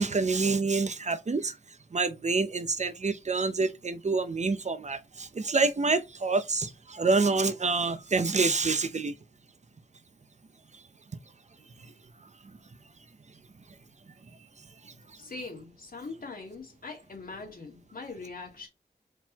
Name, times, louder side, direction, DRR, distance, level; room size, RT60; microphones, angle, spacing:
voice 1, 0.0-1.5 1.9-9.1 14.8-14.9, right 4 dB, 45° right, 0.7 m, -27 dB
voice 2, 15.2-18.7, left 3 dB, 60° left, 2.1 m, -42 dB
4.5 x 4.0 x 3.0 m
wide cardioid pair, 65°, 16 cm